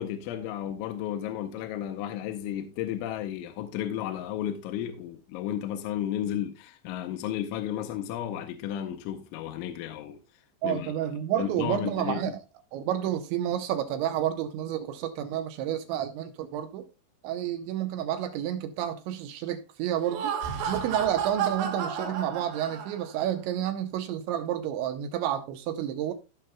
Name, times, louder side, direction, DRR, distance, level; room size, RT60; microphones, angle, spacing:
voice 1, 0.0-10.2 10.6-10.9 11.4-12.3, left 10 dB, 85° left, 3.1 m, -33 dB
voice 2, 10.6-12.4 12.7-16.9 17.2-20.4 20.7-26.1, right 11 dB, 80° right, 3.0 m, -30 dB
Laughter, 19.9-23.2, right 7 dB, 60° right, 3.7 m, -32 dB
18.0 x 6.0 x 2.2 m
omnidirectional pair, 5.5 m